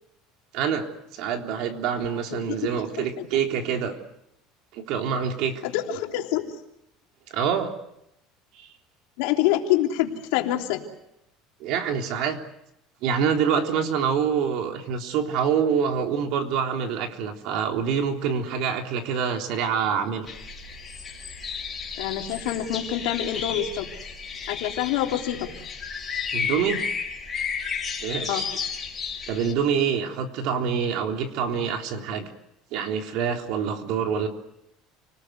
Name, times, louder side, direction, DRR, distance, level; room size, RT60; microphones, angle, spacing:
voice 1, 0.5-0.9 1.1-4.0 4.7-5.6 7.3-7.7 8.5-8.7 11.6-12.4 13.0-20.3 26.3-26.8 28.0-28.5 29.3-32.3 32.7-34.3, right 7 dB, 60° right, 3 dB, 3.6 m, -26 dB
voice 2, 2.3-2.8 3.2-3.3 5.6-6.6 9.2-10.8 22.0-23.9 24.5-25.5 28.2-28.7, left 12 dB, 80° left, 2 dB, 3.3 m, -26 dB
sound 1, 20.3-29.5, left 6 dB, 20° left, 5.4 m, -33 dB
29.5 x 19.5 x 8.1 m, 0.83 s
cardioid pair, 145°, 0 cm